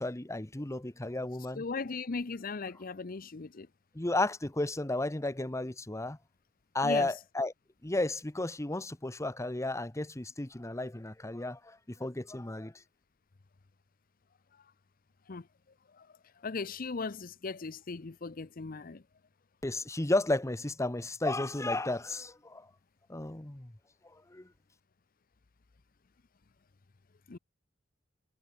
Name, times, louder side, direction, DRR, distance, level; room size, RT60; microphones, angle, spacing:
voice 1, 0.0-1.6 3.9-6.2 6.7-7.5 7.8-12.7 19.6-22.7 23.1-23.7 24.3-24.5, left 2 dB, 15° left, 0.9 m, -33 dB
voice 2, 1.5-3.7 6.8-7.1 15.3-15.5 16.0-16.1 16.4-19.0 27.3-27.4, left 4 dB, 50° left, 0.7 m, -38 dB
head